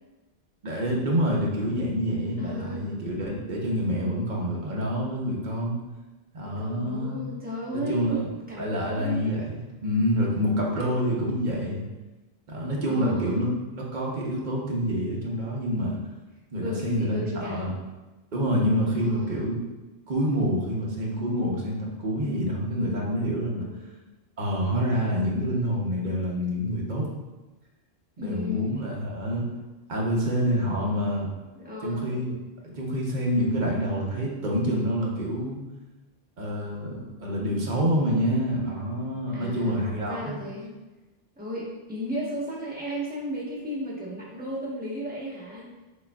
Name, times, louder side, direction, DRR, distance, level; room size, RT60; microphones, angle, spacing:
voice 1, 0.6-5.8 6.3-7.2 7.7-8.2 8.6-11.9 12.5-16.0 16.5-17.7 18.3-19.6 20.1-23.6 24.4-27.1 28.2-29.5 29.9-31.3 31.8-32.3 32.6-35.6 36.4-40.4, equal, 50° right, -3 dB, 0.9 m, -27 dB
voice 2, 2.4-3.0 6.4-9.4 10.8-11.1 12.8-13.4 16.5-17.8 18.9-19.4 23.5-24.0 28.2-28.7 31.5-32.2 39.3-40.7 41.4-45.7, left 1 dB, 10° right, -8 dB, 1.1 m, -35 dB
6.3 x 2.4 x 2.3 m, 1.1 s
omnidirectional pair, 1.1 m